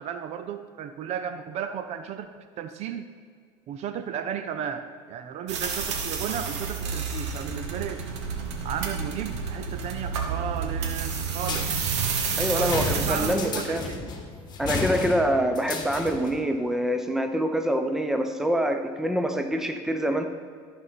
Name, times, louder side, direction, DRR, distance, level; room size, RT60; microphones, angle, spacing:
voice 1, 0.0-3.0 3.7-8.0 8.6-11.7 12.5-14.0, right 8 dB, 50° right, 9 dB, 0.6 m, -34 dB
sound 1, 5.5-13.3, right 5 dB, 85° right, 1.2 m, -30 dB
sound 2, 11.4-16.4, left 4 dB, 30° left, 1.4 m, -33 dB
voice 2, 12.4-13.9 14.6-20.3, equal, 5° right, 6 dB, 0.8 m, -25 dB
14.0 x 5.4 x 4.2 m, 2.1 s
supercardioid pair, 100°, 14 cm